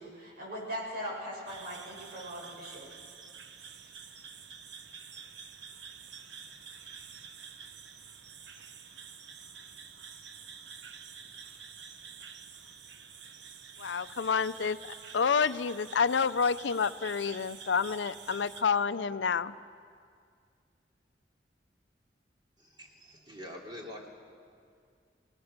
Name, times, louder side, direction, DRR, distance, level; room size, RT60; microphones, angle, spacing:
voice 1, 0.0-2.9, equal, 60° right, -4 dB, 7.7 m, -40 dB
sound 1, 1.5-18.6, right 6 dB, 75° right, 1.0 m, -48 dB
voice 2, 13.8-14.8 15.1-19.5, left 6 dB, 90° left, 14 dB, 0.6 m, -28 dB
voice 3, 22.6-24.1, left 1 dB, 25° right, -1 dB, 3.0 m, -45 dB
27.0 x 19.0 x 6.7 m, 2.2 s
head